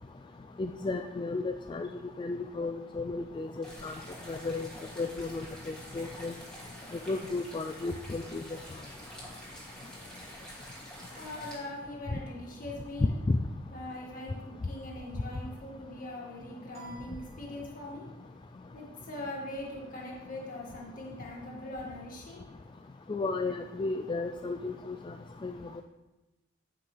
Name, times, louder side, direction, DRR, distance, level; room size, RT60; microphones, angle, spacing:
voice 1, 0.6-1.9 2.2-3.9 4.3-4.7 5.0-5.5 5.9-6.3 7.1-8.4 13.0-13.4 23.1-25.0 25.4-25.5, left 3 dB, 25° left, 5 dB, 0.3 m, -33 dB
sound 1, 3.6-11.6, equal, 5° left, 2.5 m, -47 dB
voice 2, 11.2-13.1 13.7-18.1 18.7-22.4, left 1 dB, 45° left, -3 dB, 2.1 m, -41 dB
sound 2, 16.7-18.2, right 3 dB, 30° right, 2.5 m, -52 dB
13.5 x 5.9 x 3.4 m, 1.0 s
head